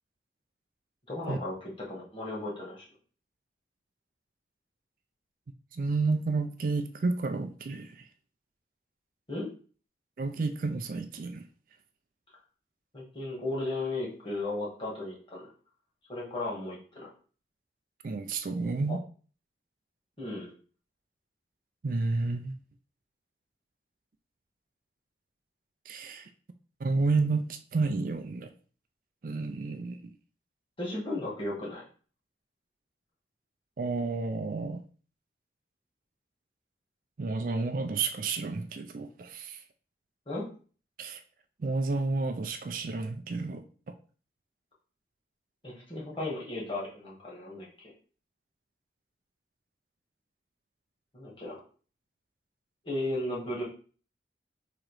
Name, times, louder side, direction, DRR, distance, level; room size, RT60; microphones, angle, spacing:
voice 1, 1.1-2.9 9.3-9.5 12.9-15.4 16.1-17.1 20.2-20.5 30.8-31.8 40.3-40.5 45.6-47.9 51.1-51.6 52.8-53.6, left 2 dB, 30° left, 1.7 m, -35 dB
voice 2, 5.7-8.1 10.2-11.5 18.0-19.0 21.8-22.6 25.9-26.3 26.8-28.5 29.2-30.1 33.8-34.8 37.2-39.6 41.0-41.2 41.6-43.6, right 3 dB, 50° right, 0.4 m, -31 dB
3.8 x 3.0 x 4.7 m
head